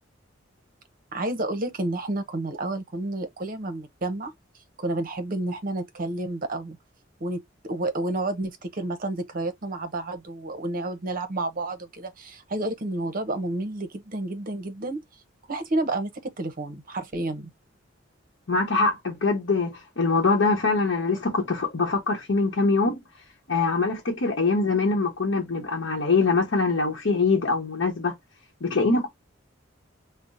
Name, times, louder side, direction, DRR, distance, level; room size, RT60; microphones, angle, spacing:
voice 1, 1.1-4.3 4.8-6.8 7.2-15.0 15.5-17.5, right 2 dB, 50° right, 0.8 m, -30 dB
voice 2, 18.5-23.0 23.5-28.1 28.6-29.1, left 3 dB, 75° left, 0.9 m, -23 dB
5.5 x 2.1 x 2.5 m
head